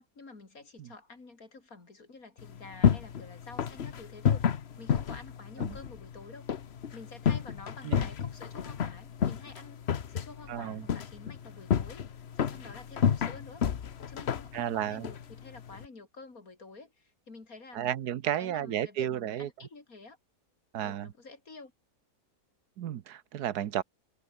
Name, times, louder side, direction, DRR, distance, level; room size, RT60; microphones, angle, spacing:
voice 1, 0.0-6.5 6.9-9.8 10.1-13.6 14.1-17.9 18.4-20.2 20.8-21.7, left 3 dB, 65° left, 3.9 m, -49 dB
sound 1, 2.4-15.9, left 8 dB, 45° left, 1.1 m, -31 dB
voice 2, 10.5-10.8 14.5-15.1 17.7-19.5 20.7-21.1 22.8-23.8, right 11 dB, 85° right, 1.5 m, -33 dB
omnidirectional pair, 1.6 m